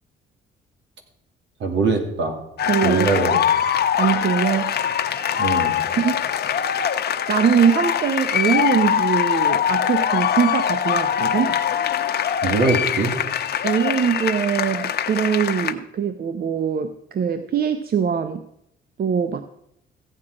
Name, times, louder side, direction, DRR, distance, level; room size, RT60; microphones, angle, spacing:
voice 1, 1.6-2.4 2.8-3.4 5.4-5.8 12.4-13.1, right 4 dB, 70° right, 3 dB, 2.8 m, -22 dB
sound 1, 2.6-15.7, left 9 dB, 55° left, 1.0 m, -22 dB
voice 2, 2.7-3.4 4.0-4.8 5.9-6.2 7.3-11.5 13.6-18.4 19.0-19.4, right 7 dB, 50° right, 10 dB, 0.8 m, -22 dB
15.5 x 8.8 x 4.9 m, 0.78 s
cardioid pair, 90°, 20 cm